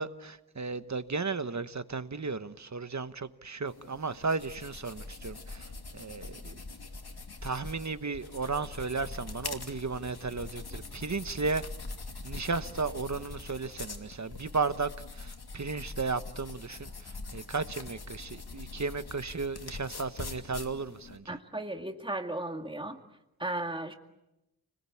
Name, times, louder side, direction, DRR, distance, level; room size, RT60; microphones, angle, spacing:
voice 1, 0.0-5.7 5.9-6.6 7.4-11.6 12.2-14.9 15.2-16.9 17.3-21.3, right 4 dB, 45° right, 1.2 m, -34 dB
sound 1, 3.7-21.2, left 3 dB, 80° left, 2.7 m, -43 dB
voice 2, 21.3-23.0 23.4-23.9, right 1 dB, 15° right, 2.1 m, -35 dB
29.5 x 21.0 x 8.6 m
wide cardioid pair, 80°, 38 cm